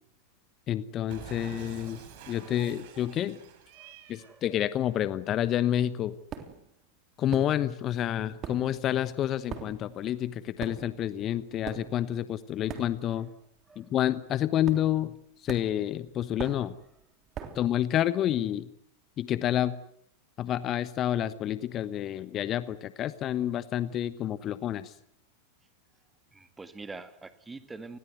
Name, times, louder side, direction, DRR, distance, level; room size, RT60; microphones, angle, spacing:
voice 1, 0.7-2.0 2.3-3.4 4.1-6.1 7.2-13.3 13.8-15.1 15.4-16.7 17.5-18.7 19.2-19.7 20.4-24.9, left 11 dB, 30° left, 15 dB, 1.1 m, -29 dB
Cat, 1.1-4.4, right 7 dB, 45° right, 5.0 m, -47 dB
sound 1, 6.3-6.7 7.3-7.9 8.2-13.3 13.6-13.9 14.6-15.2 15.5-17.7, right 8 dB, 30° right, 3.4 m, -42 dB
voice 2, 26.3-28.0, right 3 dB, 10° right, 11 dB, 2.0 m, -46 dB
29.5 x 21.0 x 8.0 m, 0.69 s
figure-of-eight pair, 90°, 0 cm